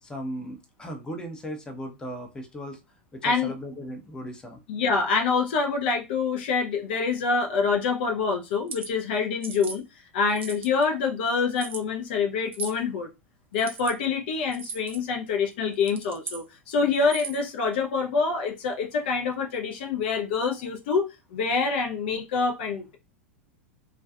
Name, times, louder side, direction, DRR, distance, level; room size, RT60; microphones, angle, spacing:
voice 1, 0.0-2.8 3.1-4.6, equal, 10° left, 0.6 m, -37 dB
voice 2, 3.2-3.5 4.7-9.8 10.1-13.1 13.5-21.1 21.3-23.0, left 4 dB, 55° left, 0.5 m, -26 dB
sound 1, 8.5-8.9 9.4-9.8 10.3-10.8 11.6-11.8 12.5-12.8 13.5-13.9 14.5-15.0 15.7-16.4 17.0-17.5, right 5 dB, 65° right, 0.5 m, -37 dB
2.3 x 2.3 x 2.3 m
figure-of-eight pair, 90°, 7 cm